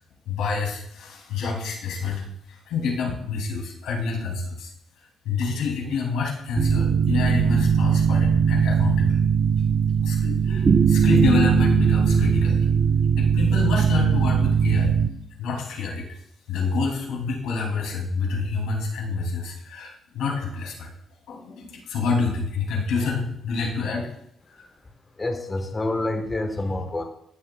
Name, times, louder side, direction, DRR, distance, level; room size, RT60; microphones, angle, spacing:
voice 1, 0.3-4.7 5.2-9.2 10.0-12.7 13.2-14.9 15.4-16.1 16.5-20.9 21.3-24.1 24.6-24.7, left 4 dB, 90° left, -2 dB, 2.6 m, -28 dB
sound 1, 6.6-15.1, right 6 dB, 35° right, 0.5 m, -20 dB
voice 2, 25.2-27.0, left 2 dB, 25° left, 4 dB, 1.1 m, -27 dB
16.0 x 6.8 x 2.2 m, 0.74 s
cardioid pair, 90°, 0 cm